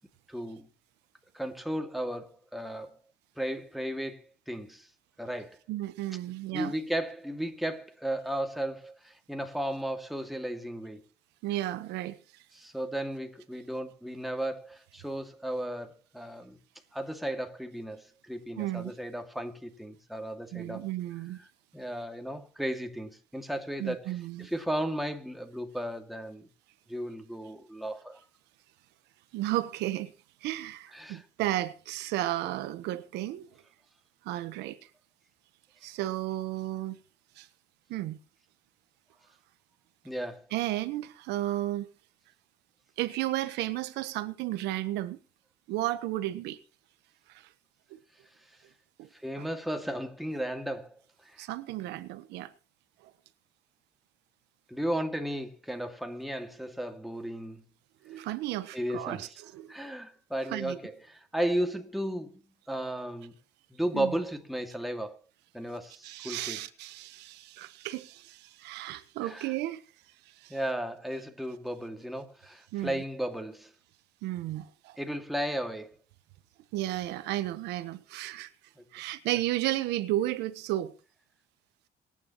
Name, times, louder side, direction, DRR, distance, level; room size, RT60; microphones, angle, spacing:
voice 1, 0.3-0.7 1.3-3.0 3.4-4.9 5.2-5.6 6.5-11.0 12.5-16.6 16.9-20.9 21.3-21.5 21.7-26.5 26.9-28.2 30.9-31.2 40.0-40.5 49.1-50.9 51.2-51.5 54.7-57.6 58.7-59.4 59.7-62.4 62.7-63.3 63.7-65.2 65.5-66.6 69.2-69.5 70.5-73.7 75.0-75.9 78.8-78.9, right 1 dB, ahead, 2.4 m, -35 dB
voice 2, 5.7-6.7 11.4-12.2 18.6-18.9 20.5-21.4 23.8-24.5 29.3-30.1 30.4-33.5 34.2-34.8 35.8-37.0 37.4-37.5 37.9-38.2 40.5-41.9 43.0-45.2 45.7-46.6 47.3-47.5 49.0-49.1 49.4-49.5 51.4-52.5 53.0-53.1 58.0-59.7 60.5-60.8 63.9-64.1 66.0-69.8 70.4-70.6 72.7-73.0 74.2-75.0 76.7-78.5 78.9-80.9, right 15 dB, 85° right, 1.2 m, -33 dB
27.5 x 9.8 x 3.1 m
cardioid pair, 110°, 17 cm